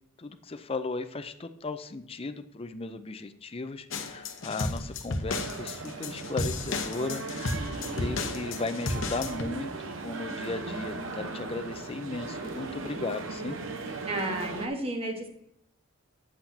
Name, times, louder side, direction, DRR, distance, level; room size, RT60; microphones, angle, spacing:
voice 1, 0.2-7.2 7.9-9.7 10.0-13.6, left 3 dB, 30° left, 9 dB, 0.5 m, -36 dB
sound 1, 3.9-9.4, left 3 dB, 70° left, 0.9 m, -33 dB
sound 2, 5.3-14.7, right 3 dB, 70° right, 0.9 m, -38 dB
voice 2, 14.1-15.3, right 1 dB, 30° right, 3 dB, 1.3 m, -32 dB
8.8 x 7.9 x 2.8 m, 0.79 s
head